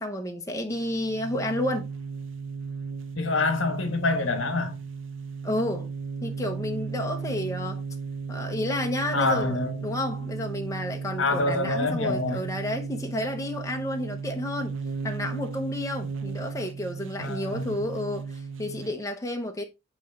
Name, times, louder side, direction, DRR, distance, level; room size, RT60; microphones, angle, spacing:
voice 1, 0.0-1.9 5.4-5.9 6.2-7.8 8.3-14.7 15.0-19.6, left 1 dB, 15° left, 0.8 m, -31 dB
sound 1, 0.7-19.0, right 5 dB, 75° right, 0.6 m, -35 dB
voice 2, 3.1-4.8 9.1-9.8 11.2-12.5 17.2-17.8, left 3 dB, 75° left, 1.2 m, -26 dB
9.0 x 3.1 x 3.5 m
head